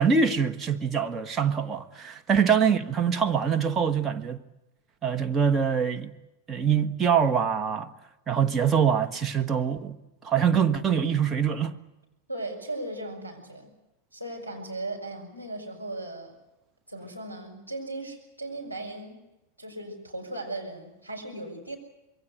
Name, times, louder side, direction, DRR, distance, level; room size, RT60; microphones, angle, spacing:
voice 1, 0.0-4.4 5.0-6.1 6.5-7.9 8.3-10.0 10.2-11.8, right 7 dB, 20° right, 1.6 m, -24 dB
voice 2, 12.3-13.7 14.1-16.3 16.9-19.2 19.6-21.8, right 2 dB, 90° right, 6.2 m, -37 dB
26.0 x 22.5 x 8.1 m
figure-of-eight pair, 90°, 0 cm